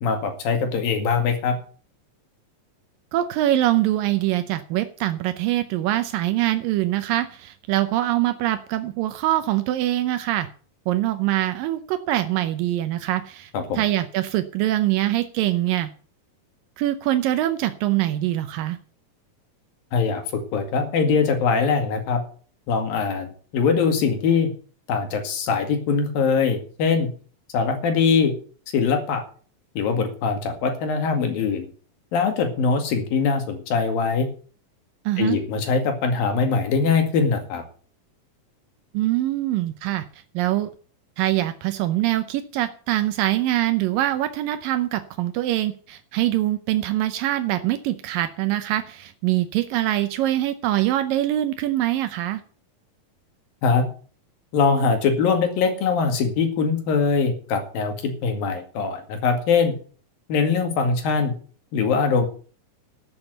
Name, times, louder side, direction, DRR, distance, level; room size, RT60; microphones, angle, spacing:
voice 1, 0.0-1.6 13.5-13.8 19.9-22.2 22.7-24.5 24.9-27.1 27.5-28.3 28.7-29.2 29.8-31.7 32.1-34.3 35.2-37.6 53.6-53.9 54.5-59.7 60.3-61.3 61.7-62.3, left 5 dB, 80° left, 5 dB, 4.0 m, -22 dB
voice 2, 3.1-10.5 10.9-15.9 16.8-18.8 35.1-35.4 38.9-40.7 41.2-52.4, right 14 dB, 80° right, 10 dB, 2.4 m, -23 dB
13.0 x 7.1 x 8.0 m, 0.41 s
omnidirectional pair, 4.0 m